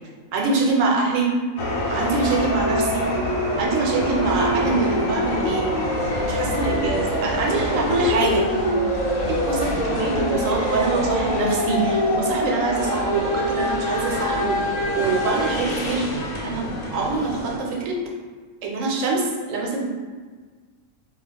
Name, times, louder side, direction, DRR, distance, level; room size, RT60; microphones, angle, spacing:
voice 1, 0.3-1.3 1.9-3.1 3.6-5.9 6.2-8.4 9.3-16.0 16.4-18.0 18.6-19.9, right 3 dB, 75° right, -1 dB, 0.9 m, -24 dB
sound 1, 1.6-17.6, left 1 dB, 80° left, 1.0 m, -24 dB
2.3 x 2.3 x 3.2 m, 1.5 s
omnidirectional pair, 1.4 m